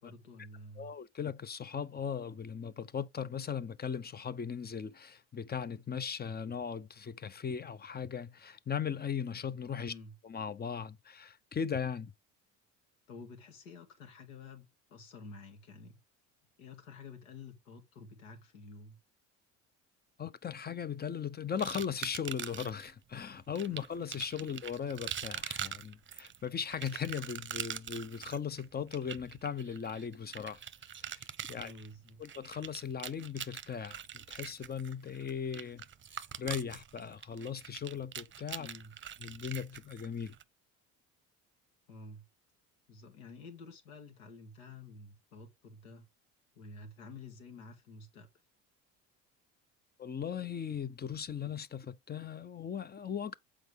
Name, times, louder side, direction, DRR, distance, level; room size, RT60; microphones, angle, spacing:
voice 1, 0.0-0.9 9.8-10.1 13.1-16.0 16.6-19.0 23.7-23.8 31.5-32.2 38.6-39.0 41.9-42.2 42.9-46.1 46.6-48.3, left 3 dB, 85° left, 2.4 m, -50 dB
voice 2, 0.8-9.9 10.2-12.1 20.2-30.6 30.9-31.7 32.2-35.8 36.1-38.7 39.2-40.4 50.0-53.3, left 7 dB, 25° left, 0.7 m, -38 dB
sound 1, 21.6-22.9 23.6-40.4, right 9 dB, 30° right, 0.8 m, -43 dB
7.9 x 4.8 x 3.5 m
hypercardioid pair, 70°, 37 cm